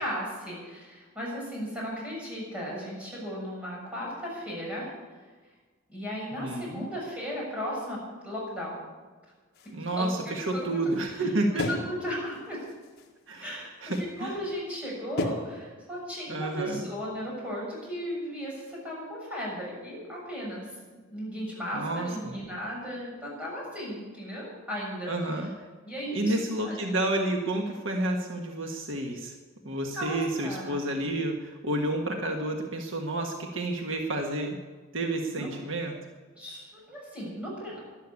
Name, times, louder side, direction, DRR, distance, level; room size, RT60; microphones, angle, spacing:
voice 1, 0.0-4.9 5.9-8.0 8.2-8.8 9.8-10.8 11.1-11.3 11.7-12.6 13.4-25.1 25.8-26.8 29.9-30.8 35.3-35.5 36.3-37.8, equal, 5° right, -5 dB, 6.7 m, -36 dB
voice 2, 6.4-6.9 9.7-11.7 13.3-14.3 16.3-16.9 21.7-22.4 25.1-25.5 26.1-29.3 29.6-34.6 34.9-36.0, right 1 dB, 65° right, 2 dB, 1.6 m, -30 dB
sound 1, 9.5-11.2 11.6-12.1 12.3-13.6 13.9-14.3 15.2-15.3, left 2 dB, 50° left, 1.8 m, -36 dB
12.5 x 11.5 x 8.5 m, 1.4 s
head